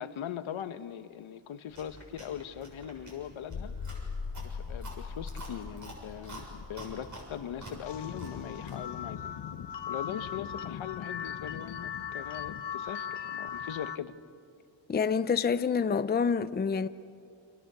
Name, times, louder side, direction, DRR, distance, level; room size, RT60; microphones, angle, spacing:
voice 1, 0.0-3.8 4.4-9.4 9.9-14.2, left 9 dB, 85° left, 1.2 m, -40 dB
Chewing mastication, 1.7-8.9, right 1 dB, 40° right, 6.9 m, -48 dB
explosion sourde, 3.4-9.8, left 5 dB, 45° left, 1.6 m, -42 dB
sound 1, 7.8-14.0, left 8 dB, 60° left, 1.0 m, -38 dB
voice 2, 14.9-16.9, left 6 dB, 20° left, 0.6 m, -27 dB
29.5 x 26.0 x 6.8 m
wide cardioid pair, 130°, 47 cm